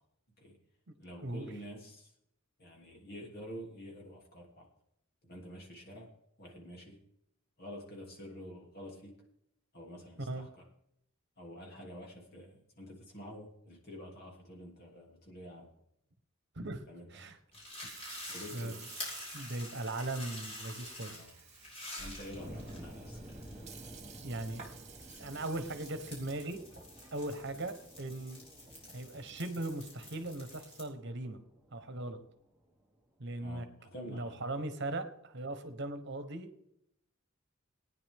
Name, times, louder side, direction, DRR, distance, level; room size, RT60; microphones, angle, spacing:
voice 1, 1.0-2.1 2.6-4.7 5.2-6.1 6.4-7.0 7.6-9.2 9.7-10.6 11.4-15.7 16.9-17.3 18.3-18.8 21.0-21.4 22.0-23.2 33.4-34.4, equal, 50° left, 0 dB, 3.0 m, -48 dB
sound 1, 17.5-30.8, left 1 dB, 30° left, 5.5 m, -48 dB
Sink (filling or washing) / Fill (with liquid), 17.5-29.1, right 6 dB, 35° right, 1.9 m, -54 dB
voice 2, 19.3-21.1 24.2-24.6 25.2-26.6 27.1-28.4 28.9-31.4 31.7-32.2 33.2-33.7 34.1-36.5, right 2 dB, 55° right, 9 dB, 1.2 m, -39 dB
sound 2, 22.3-33.1, equal, 5° right, 1.3 m, -52 dB
18.5 x 9.7 x 3.7 m, 0.76 s
head